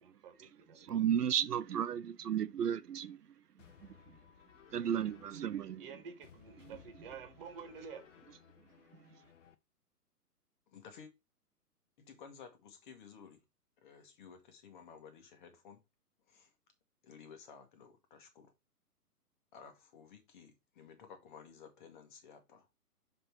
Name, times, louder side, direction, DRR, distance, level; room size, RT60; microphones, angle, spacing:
voice 1, 0.0-1.0 5.8-8.0, right 6 dB, 35° right, 1.6 m, -50 dB
voice 2, 0.8-3.3 3.8-4.2 4.7-5.9 9.1-9.2, right 9 dB, 75° right, 0.6 m, -34 dB
sound 1, 3.6-9.5, left 8 dB, 50° left, 0.9 m, -60 dB
voice 3, 10.7-11.1 12.0-13.4 13.8-15.8 16.3-16.5 17.0-18.5 19.5-22.7, left 6 dB, 30° left, 1.4 m, -55 dB
6.6 x 3.9 x 4.5 m
figure-of-eight pair, 130°, 47 cm